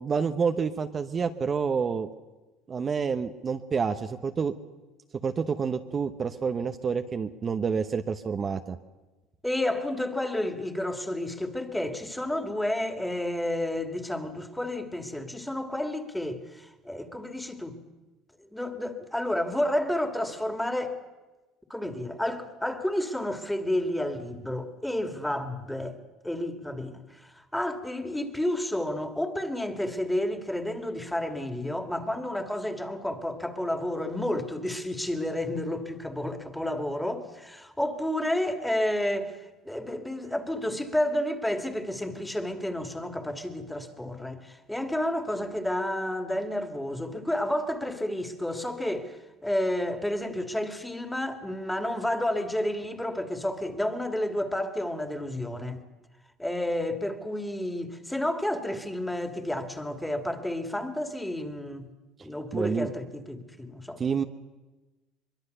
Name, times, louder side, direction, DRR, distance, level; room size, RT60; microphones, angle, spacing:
voice 1, 0.0-2.1 2.7-4.5 5.2-8.8 62.5-62.9 64.0-64.2, right 6 dB, 35° right, 1.0 m, -28 dB
voice 2, 9.4-17.8 18.5-21.0 21.7-26.0 26.2-55.8 56.4-61.9 62.2-64.0, left 1 dB, 5° left, 2.5 m, -31 dB
23.0 x 22.5 x 6.8 m
hypercardioid pair, 80°, 0 cm